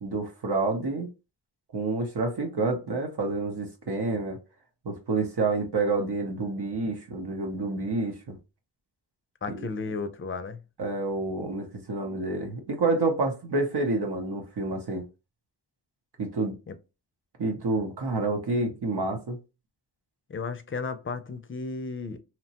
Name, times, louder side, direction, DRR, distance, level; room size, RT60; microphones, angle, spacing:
voice 1, 0.0-1.1 1.7-4.4 4.8-8.3 9.5-9.7 10.8-15.0 16.2-16.5 17.4-19.4, right 3 dB, 75° right, 0.8 m, -28 dB
voice 2, 9.4-10.6 16.7-16.8 20.3-22.2, left 4 dB, 30° left, 0.4 m, -34 dB
2.9 x 2.1 x 2.8 m
wide cardioid pair, 55°, 40 cm